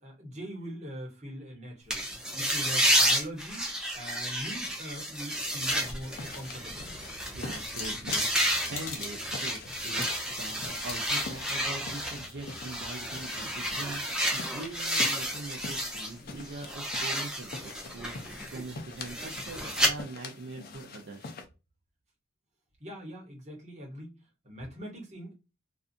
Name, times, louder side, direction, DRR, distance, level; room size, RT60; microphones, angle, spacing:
voice 1, 0.0-6.9 18.5-18.7 22.8-24.2 24.4-25.3, equal, 35° right, 1.1 m, -42 dB
sound 1, 1.9-16.1 16.4-19.9, equal, 5° right, 0.5 m, -31 dB
sound 2, 5.6-14.0, left 5 dB, 80° left, 0.8 m, -45 dB
sound 3, 5.7-21.4, left 3 dB, 45° left, 0.5 m, -45 dB
voice 2, 7.3-21.3, right 2 dB, 55° right, 0.5 m, -42 dB
2.6 x 2.4 x 2.4 m
head